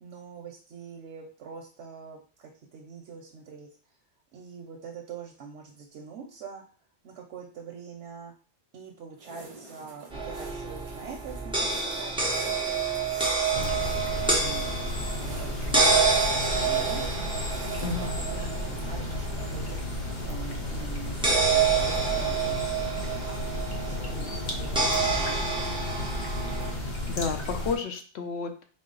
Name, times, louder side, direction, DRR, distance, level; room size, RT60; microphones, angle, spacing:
voice 1, 0.0-3.7 4.3-6.6 7.0-8.3 8.7-17.4 17.8-19.8 20.2-23.4 23.8-26.1, right 6 dB, 90° right, 0 dB, 0.9 m, -44 dB
sound 1, 9.2-18.2, right 2 dB, 35° right, 0.6 m, -48 dB
sound 2, 10.1-26.7, right 4 dB, 5° right, 0.8 m, -28 dB
sound 3, 13.5-27.7, left 2 dB, 50° left, 0.8 m, -33 dB
voice 2, 17.8-18.1 27.1-28.6, left 5 dB, 75° left, 6 dB, 0.9 m, -31 dB
4.1 x 2.0 x 3.8 m, 0.41 s
omnidirectional pair, 1.1 m